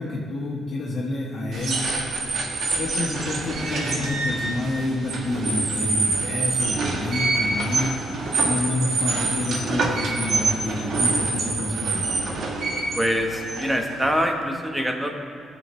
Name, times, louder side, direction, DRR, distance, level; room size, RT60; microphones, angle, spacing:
voice 1, 0.0-1.8 2.8-7.9 8.4-12.1, left 2 dB, 55° left, -7 dB, 1.6 m, -28 dB
sound 1, 1.5-14.2, right 3 dB, 65° right, 1.5 m, -26 dB
voice 2, 13.0-15.1, equal, 5° right, 3 dB, 1.2 m, -24 dB
16.0 x 6.9 x 3.2 m, 2.6 s
cardioid pair, 90°, 0 cm